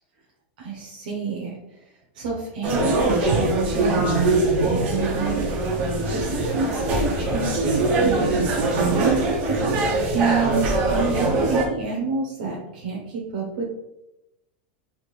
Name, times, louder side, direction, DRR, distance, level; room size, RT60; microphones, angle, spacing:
voice 1, 0.6-1.5 2.1-5.5 6.1-9.3 10.1-13.7, right 5 dB, 75° right, -3 dB, 0.7 m, -28 dB
sound 1, 2.6-11.7, right 2 dB, 35° right, 0.7 m, -22 dB
3.5 x 2.5 x 3.1 m, 0.91 s
supercardioid pair, 150°, 5 cm